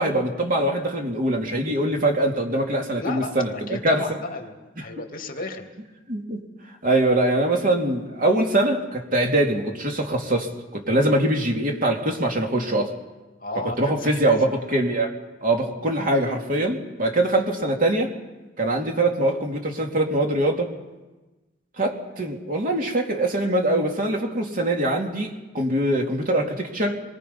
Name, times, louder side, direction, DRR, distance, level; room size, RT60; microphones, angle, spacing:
voice 1, 0.0-4.0 6.1-6.4 6.8-12.9 13.8-18.1 18.6-20.7 21.8-27.0, right 1 dB, 45° right, 2 dB, 2.6 m, -23 dB
voice 2, 3.0-5.7 13.4-14.6, left 2 dB, 50° left, 3 dB, 2.6 m, -34 dB
27.5 x 23.0 x 5.5 m, 1.2 s
head